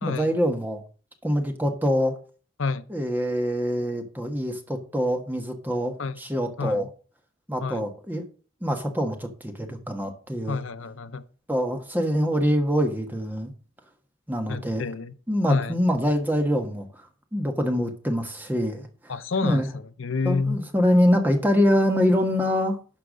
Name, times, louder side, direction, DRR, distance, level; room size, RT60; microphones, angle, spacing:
voice 1, 0.0-0.8 1.2-2.1 2.9-6.9 7.5-8.2 8.6-10.6 11.5-13.5 14.3-14.8 15.3-16.9 17.3-19.1 19.4-19.7 20.2-22.8, equal, 10° right, 1.4 m, -24 dB
voice 2, 6.6-6.9 7.6-7.9 10.5-11.2 14.5-15.1 15.5-15.8 19.1-20.6, left 4 dB, 75° left, 0.7 m, -29 dB
11.5 x 4.7 x 6.3 m
head